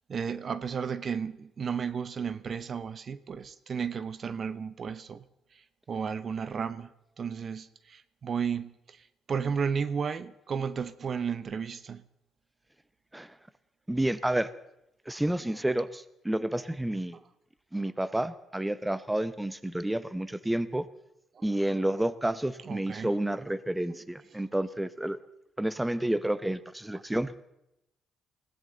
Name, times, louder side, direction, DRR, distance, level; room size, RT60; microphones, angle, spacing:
voice 1, 0.1-5.3 5.5-12.0 21.3-21.4 22.6-23.2 23.5-23.6 23.9-24.0 26.9-27.0, right 6 dB, 50° right, 0.7 m, -34 dB
voice 2, 13.9-14.5 15.1-17.2 17.7-20.9 21.4-25.2 25.6-27.4, right 1 dB, 10° right, 0.8 m, -30 dB
21.0 x 17.0 x 3.9 m
cardioid pair, 90°, 0 cm